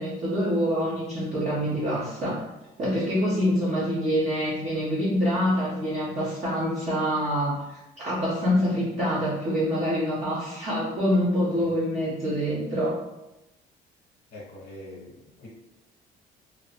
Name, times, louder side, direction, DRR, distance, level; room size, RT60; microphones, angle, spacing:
voice 1, 0.0-2.4 2.8-7.6 8.0-13.0, equal, 40° right, -10 dB, 1.1 m, -26 dB
voice 2, 14.3-15.5, left 1 dB, 60° left, -5 dB, 0.9 m, -43 dB
3.2 x 2.0 x 2.8 m, 0.96 s
cardioid pair, 110°, 17 cm